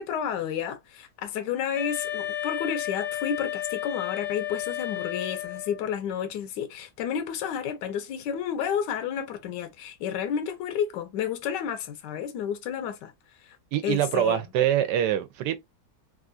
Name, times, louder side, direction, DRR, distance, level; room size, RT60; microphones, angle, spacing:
voice 1, 0.0-13.1 13.4-13.6 13.8-14.5, left 8 dB, 85° left, 1.2 m, -31 dB
Wind instrument woodwind instrument, 1.7-5.9, left 12 dB, 60° left, 0.7 m, -32 dB
voice 2, 13.7-15.6, right 11 dB, 80° right, 1.2 m, -24 dB
3.4 x 2.4 x 2.5 m
omnidirectional pair, 1.8 m